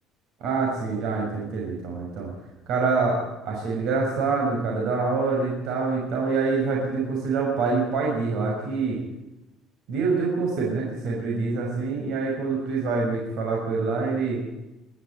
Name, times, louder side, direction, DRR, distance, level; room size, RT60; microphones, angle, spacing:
voice 1, 0.4-2.3 2.7-9.0 9.9-14.4, right 4 dB, 60° right, -2 dB, 5.8 m, -26 dB
22.5 x 13.5 x 9.2 m, 0.98 s
cardioid pair, 160°, 0 cm